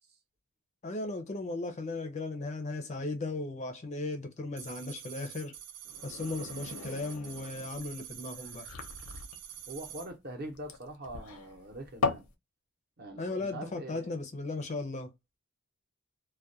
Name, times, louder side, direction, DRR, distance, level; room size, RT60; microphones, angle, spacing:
voice 1, 0.8-5.5 6.0-8.6 13.2-15.1, left 2 dB, 30° left, 0.4 m, -36 dB
sound 1, 4.6-10.1, right 10 dB, 85° right, 0.5 m, -46 dB
sound 2, 5.8-12.3, left 4 dB, 90° left, 0.6 m, -38 dB
voice 2, 9.7-12.2 13.0-14.1, right 1 dB, 45° right, 0.7 m, -43 dB
2.2 x 2.1 x 2.6 m
head